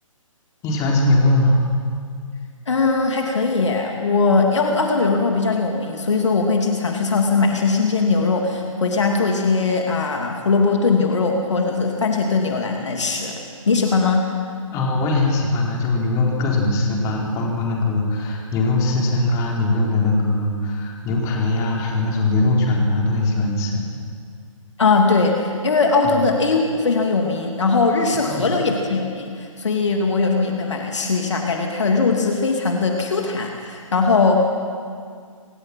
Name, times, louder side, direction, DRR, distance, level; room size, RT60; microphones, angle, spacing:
voice 1, 0.6-1.6 14.7-23.8 26.0-26.2 28.2-28.5, left 2 dB, 20° left, -1 dB, 4.2 m, -20 dB
voice 2, 2.7-13.4 13.7-14.3 24.8-34.4, left 4 dB, 55° left, 2 dB, 3.0 m, -20 dB
27.0 x 18.0 x 6.2 m, 2.1 s
figure-of-eight pair, 135°, 18 cm